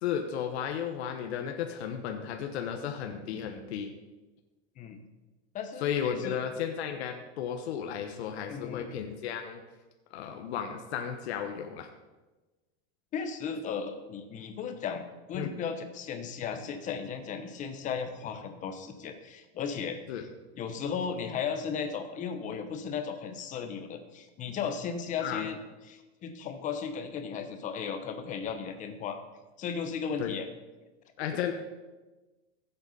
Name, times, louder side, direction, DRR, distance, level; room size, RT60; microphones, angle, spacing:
voice 1, 0.0-3.9 5.8-9.6 10.1-11.9 15.4-15.5 20.1-20.2 25.2-25.5 30.2-30.4 31.2-31.5, left 8 dB, 75° left, 5 dB, 1.1 m, -34 dB
voice 2, 5.5-6.4 8.5-8.9 13.1-15.0 15.3-20.3 20.6-25.6 25.9-29.2 29.6-30.5 31.3-31.4, left 6 dB, 25° left, 7 dB, 0.9 m, -35 dB
14.5 x 8.0 x 4.1 m, 1.2 s
supercardioid pair, 160°, 33 cm